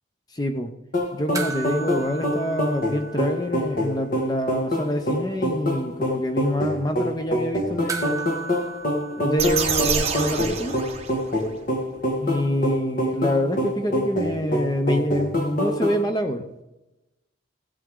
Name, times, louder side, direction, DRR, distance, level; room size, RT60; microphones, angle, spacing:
voice 1, 0.3-0.7 1.1-8.3 9.2-10.8 12.2-16.6, left 1 dB, 20° left, 7 dB, 0.6 m, -26 dB
sound 1, 0.9-16.0, equal, 45° left, 1.8 m, -26 dB
sound 2, 1.3-4.0 4.3-4.4 7.9-10.5 12.6-12.7, right 5 dB, 15° right, 1.0 m, -36 dB
sound 3, 9.4-11.5, right 6 dB, 30° right, 1.4 m, -27 dB
16.0 x 8.3 x 3.7 m, 0.95 s
head